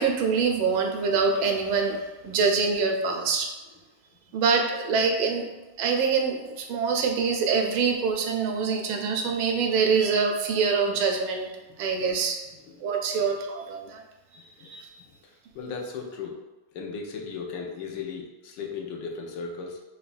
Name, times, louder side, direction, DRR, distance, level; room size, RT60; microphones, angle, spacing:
voice 1, 0.0-2.0 2.2-3.5 4.3-5.5 5.8-11.5 11.8-12.4 12.8-14.0 14.6-14.9, right 5 dB, 90° right, 3 dB, 1.4 m, -25 dB
voice 2, 15.5-16.4 16.7-19.8, left 5 dB, 80° left, 0 dB, 1.3 m, -36 dB
4.9 x 2.2 x 2.4 m, 1.1 s
omnidirectional pair, 2.2 m